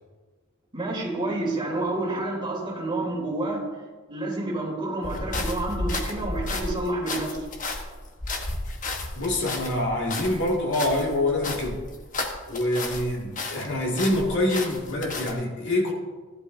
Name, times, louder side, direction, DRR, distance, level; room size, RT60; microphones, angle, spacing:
voice 1, 0.7-3.6 4.1-7.4, right 2 dB, 25° right, -4 dB, 3.5 m, -29 dB
sound 1, 5.0-13.1 13.4-15.3, left 2 dB, 40° left, 1.2 m, -33 dB
voice 2, 9.1-11.8 12.5-15.9, left 1 dB, 60° left, -2 dB, 2.3 m, -25 dB
15.5 x 11.5 x 2.7 m, 1.4 s
head